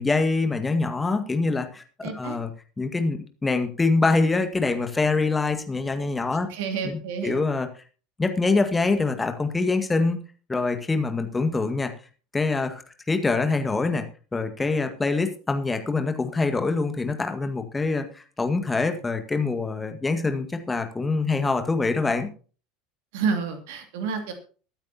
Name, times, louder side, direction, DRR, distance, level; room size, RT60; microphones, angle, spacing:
voice 1, 0.0-1.8 2.1-2.5 2.8-6.5 6.8-7.7 8.2-10.2 10.5-11.9 12.3-12.8 13.1-14.1 14.3-22.3, left 3 dB, 15° left, 7 dB, 1.9 m, -24 dB
voice 2, 2.0-2.4 6.5-7.4 23.1-24.3, right 5 dB, 60° right, 5 dB, 2.5 m, -29 dB
23.0 x 8.9 x 2.9 m, 0.39 s
figure-of-eight pair, 75°, 0 cm